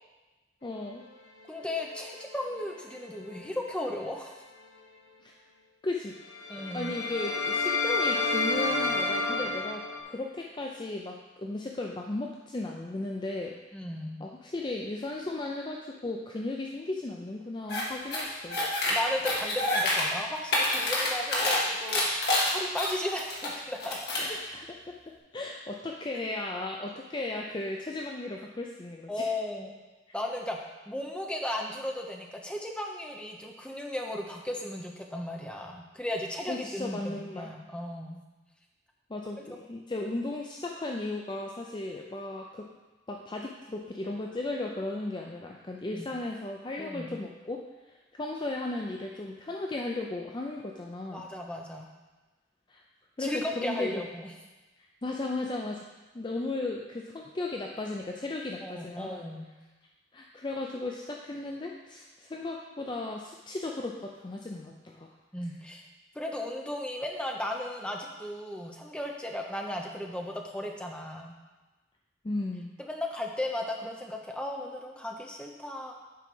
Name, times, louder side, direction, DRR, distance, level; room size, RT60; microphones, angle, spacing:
voice 1, 0.6-1.0 5.2-5.3 5.8-6.2 6.7-9.8 10.1-13.5 14.2-18.6 24.2-24.9 25.3-29.3 36.5-37.5 39.1-42.7 43.1-47.6 48.1-51.2 52.7-52.8 53.2-54.0 55.0-55.9 56.1-59.2 60.1-65.1 72.2-72.7, left 2 dB, 25° left, 0 dB, 0.5 m, -35 dB
voice 2, 1.5-4.3 6.5-6.9 13.7-14.2 18.9-24.0 29.1-29.7 30.1-30.6 30.9-38.3 45.9-46.1 46.8-47.1 51.1-51.9 53.2-54.3 58.6-59.5 65.3-65.8 66.1-71.4 72.8-75.9, left 1 dB, 5° left, 0 dB, 0.8 m, -35 dB
sound 1, 1.7-3.5 3.8-4.1 6.3-10.0, left 3 dB, 80° left, 1.0 m, -31 dB
sound 2, 17.7-17.8 18.1-18.9 19.2-20.0 20.4-21.6 21.9-23.5 23.8-24.3, left 2 dB, 60° left, 1.8 m, -27 dB
7.5 x 4.7 x 5.4 m, 1.2 s
head